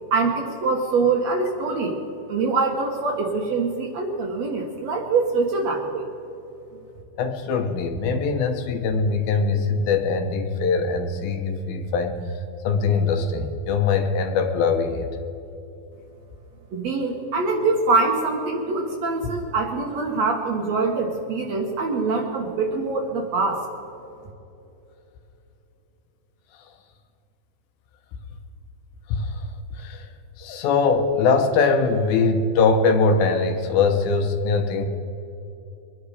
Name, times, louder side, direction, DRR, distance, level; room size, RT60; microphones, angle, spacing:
voice 1, 0.1-2.0 2.3-6.1 16.7-23.6, right 3 dB, 60° right, 2 dB, 2.0 m, -24 dB
voice 2, 7.2-12.1 12.6-15.1 29.1-29.4 29.8-30.1 30.4-34.8, left 4 dB, 80° left, 5 dB, 2.9 m, -22 dB
23.0 x 10.5 x 4.9 m, 2.9 s
omnidirectional pair, 4.2 m